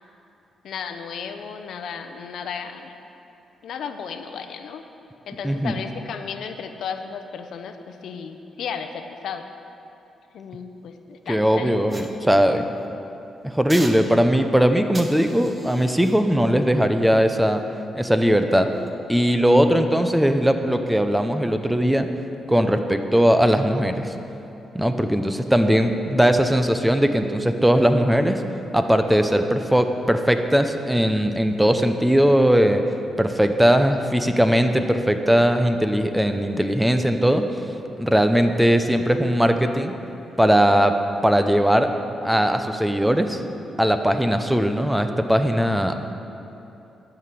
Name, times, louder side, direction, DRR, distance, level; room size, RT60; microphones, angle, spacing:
voice 1, 0.6-2.9 3.6-4.8 5.3-9.4 10.3-11.7 12.2-12.7, left 6 dB, 75° left, 7 dB, 0.7 m, -34 dB
voice 2, 11.3-12.6 13.4-17.6 17.9-18.7 19.1-22.1 22.5-24.1 24.7-28.4 28.7-32.8 33.2-37.4 38.0-39.9 40.4-40.9 41.2-41.9 42.2-43.4 43.8-45.9, equal, 5° right, 7 dB, 0.7 m, -19 dB
sound 1, 11.9-12.9 13.7-14.5 14.9-18.2 18.7-18.9, right 2 dB, 25° right, 1.1 m, -41 dB
11.0 x 6.0 x 8.3 m, 2.9 s
cardioid pair, 90°, 0 cm